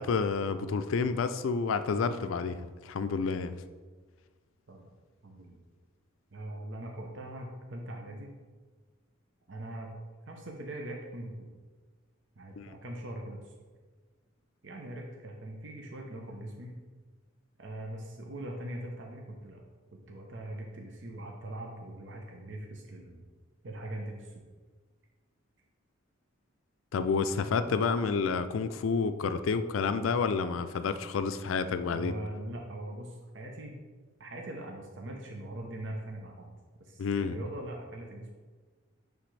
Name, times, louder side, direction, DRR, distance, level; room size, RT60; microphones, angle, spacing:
voice 1, 0.0-3.5 12.6-12.7 26.9-32.1 37.0-37.4, left 5 dB, 80° left, 10 dB, 0.4 m, -29 dB
voice 2, 5.2-5.6 6.3-8.4 9.5-9.9 10.3-11.3 12.3-13.5 14.6-16.8 17.6-19.6 20.1-23.2 23.6-24.3 31.9-33.8 34.2-36.5 36.8-38.3, right 1 dB, 60° right, 1 dB, 0.7 m, -41 dB
9.9 x 3.4 x 3.2 m, 1.4 s
head